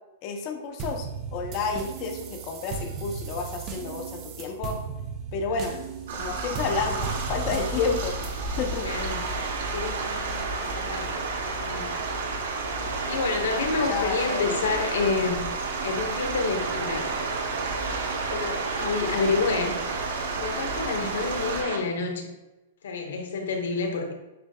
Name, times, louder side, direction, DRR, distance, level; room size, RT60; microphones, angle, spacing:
voice 1, 0.2-1.1 1.3-4.8 5.3-5.7 6.1-8.8 13.9-14.7, left 5 dB, 35° left, 3 dB, 0.6 m, -30 dB
sound 1, 0.8-8.5, right 6 dB, 25° right, 0.4 m, -36 dB
sound 2, 6.1-21.6, right 3 dB, 60° right, 0.8 m, -33 dB
voice 2, 8.8-9.2 9.7-11.2 11.5-11.9 13.1-15.5 15.8-17.1 18.3-19.8 20.4-22.3 22.8-24.1, left 4 dB, 85° left, 4 dB, 0.8 m, -29 dB
sound 3, 8.9-21.8, right 4 dB, 90° right, 0.7 m, -32 dB
7.5 x 2.7 x 2.2 m, 1.0 s
supercardioid pair, 170°, 0 cm